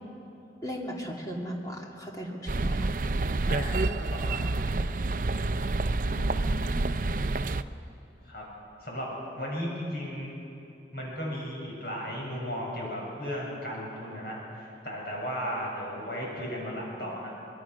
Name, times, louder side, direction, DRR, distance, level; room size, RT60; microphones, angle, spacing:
voice 1, 0.6-2.9 6.1-7.1, equal, 20° left, -1 dB, 2.7 m, -37 dB
sound 1, 2.5-7.6, right 2 dB, 50° right, 0.6 m, -28 dB
voice 2, 3.4-4.4 8.2-8.4 8.8-9.1 9.4-10.3 10.9-17.3, equal, 60° left, -3 dB, 7.2 m, -35 dB
24.5 x 21.5 x 6.3 m, 2.9 s
head